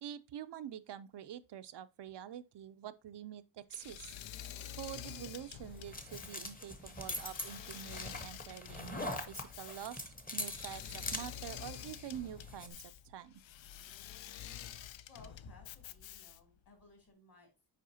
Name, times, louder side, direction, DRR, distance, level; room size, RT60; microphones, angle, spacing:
voice 1, 0.0-4.1 4.8-13.4, right 10 dB, 65° right, 0.5 m, -47 dB
Engine / Mechanisms, 3.7-16.6, left 11 dB, 80° left, 0.5 m, -48 dB
sound 1, 5.3-12.7, left 1 dB, 20° left, 0.8 m, -43 dB
voice 2, 15.1-17.7, left 2 dB, 50° left, 2.5 m, -59 dB
7.5 x 4.8 x 2.7 m
wide cardioid pair, 135°, 45 cm